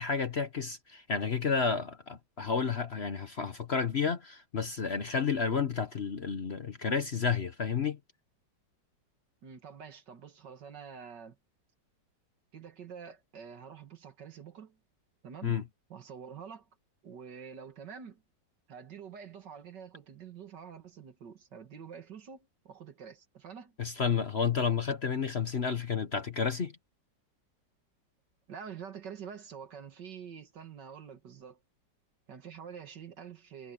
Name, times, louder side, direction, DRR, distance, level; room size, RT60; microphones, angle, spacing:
voice 1, 0.0-8.0 15.4-15.6 23.8-26.7, left 6 dB, 40° left, 1.1 m, -31 dB
voice 2, 9.4-11.4 12.5-14.8 15.2-16.7 17.0-18.2 18.7-23.8 28.5-31.6 32.3-33.7, right 7 dB, 70° right, 2.4 m, -47 dB
omnidirectional pair, 1.9 m